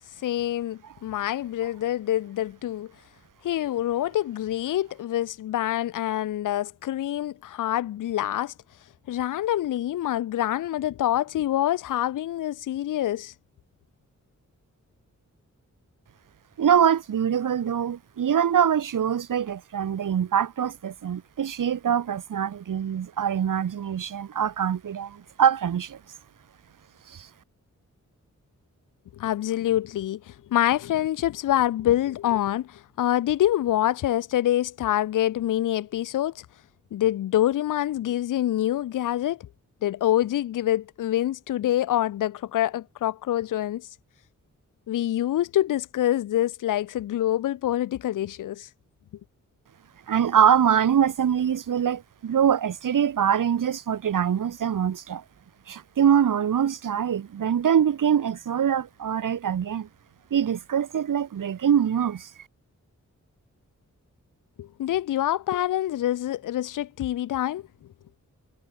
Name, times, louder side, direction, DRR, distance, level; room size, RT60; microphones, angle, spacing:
voice 1, 0.2-2.9 3.4-8.5 9.1-13.3 29.1-36.5 36.9-39.4 39.8-43.9 44.9-48.7 64.6-67.6, left 13 dB, 80° left, 0.5 m, -26 dB
voice 2, 16.6-26.0 27.1-27.3 50.1-55.2 55.7-59.9 60.3-62.3, right 8 dB, 90° right, 1.4 m, -24 dB
wide cardioid pair, 120°, 31 cm